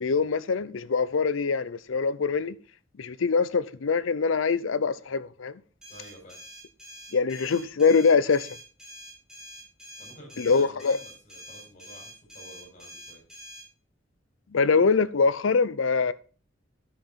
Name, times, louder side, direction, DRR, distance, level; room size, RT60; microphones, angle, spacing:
voice 1, 0.0-2.6 3.0-5.6 7.1-8.5 10.4-11.0 14.5-16.1, left 5 dB, 85° left, 0.6 m, -23 dB
sound 1, 5.8-13.7, equal, 5° right, 3.3 m, -46 dB
voice 2, 5.9-6.4 10.0-13.2, equal, 40° left, 5.1 m, -49 dB
11.5 x 6.6 x 4.1 m
head